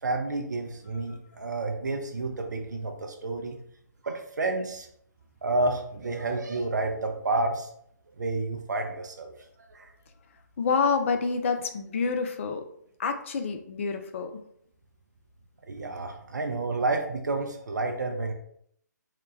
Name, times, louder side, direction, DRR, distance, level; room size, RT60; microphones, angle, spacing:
voice 1, 0.0-3.6 4.0-4.9 5.4-7.7 8.2-9.3 9.7-9.9 15.7-18.3, right 2 dB, 65° right, 4 dB, 0.5 m, -30 dB
voice 2, 10.6-12.6 13.0-14.3, left 5 dB, 40° left, 7 dB, 0.4 m, -27 dB
3.8 x 2.1 x 3.2 m, 0.68 s
figure-of-eight pair, 140°, 10 cm